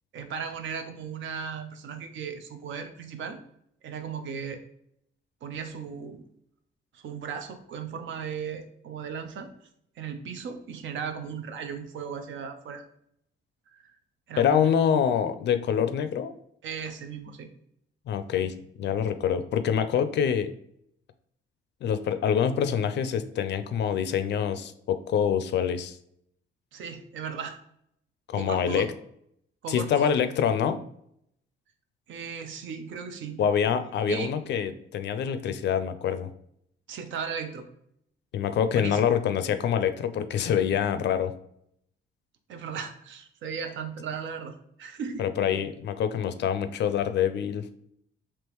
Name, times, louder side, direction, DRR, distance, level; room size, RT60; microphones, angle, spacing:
voice 1, 0.1-3.4 3.8-4.6 5.4-6.2 6.9-9.5 10.0-12.8 13.7-13.9 14.3-14.7 16.6-17.5 26.7-27.6 28.3-28.9 29.6-30.1 32.1-33.4 34.1-34.3 36.9-37.6 38.7-39.0 42.5-45.3, right 6 dB, 70° right, 8 dB, 0.6 m, -36 dB
voice 2, 14.4-16.3 18.1-20.5 21.8-26.0 28.3-28.9 29.7-30.8 33.4-36.3 38.3-41.3 45.2-47.7, left 8 dB, 60° left, 11 dB, 0.4 m, -26 dB
3.5 x 2.9 x 3.0 m, 0.71 s
cardioid pair, 90°, 20 cm